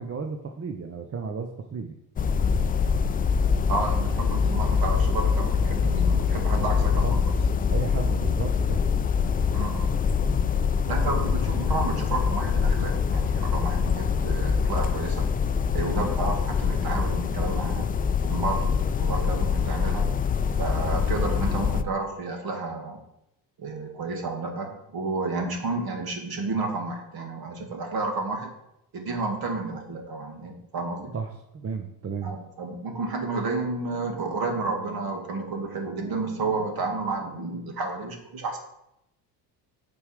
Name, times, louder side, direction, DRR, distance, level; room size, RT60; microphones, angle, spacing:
voice 1, 0.0-2.0 6.8-7.2 7.7-8.8 31.1-32.3, right 5 dB, 30° right, 5 dB, 0.9 m, -33 dB
sound 1, 2.2-21.8, left 6 dB, 20° left, 0.4 m, -24 dB
voice 2, 3.7-7.0 9.5-9.9 10.9-15.3 15.7-17.9 18.2-20.1 20.6-23.0 23.6-28.5 28.9-31.1 32.2-38.6, right 3 dB, 45° right, 3 dB, 2.4 m, -31 dB
8.2 x 5.4 x 4.9 m, 0.82 s
hypercardioid pair, 70°, 48 cm